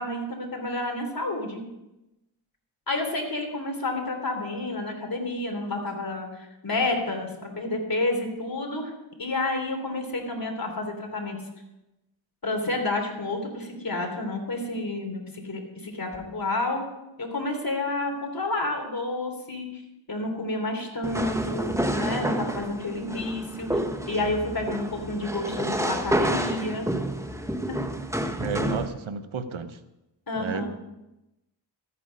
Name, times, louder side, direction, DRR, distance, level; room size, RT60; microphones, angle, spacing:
voice 1, 0.0-1.6 2.9-8.9 9.2-11.4 12.4-16.8 17.2-19.8 20.1-26.9 27.7-27.8 28.7-28.8 30.3-30.7, left 2 dB, 50° left, 2 dB, 3.4 m, -30 dB
sound 1, 21.0-28.9, right 1 dB, 5° right, 1.2 m, -29 dB
voice 2, 28.4-29.8 30.3-30.6, right 5 dB, 85° right, 10 dB, 1.0 m, -32 dB
14.0 x 8.9 x 5.3 m, 0.95 s
cardioid pair, 50°, 47 cm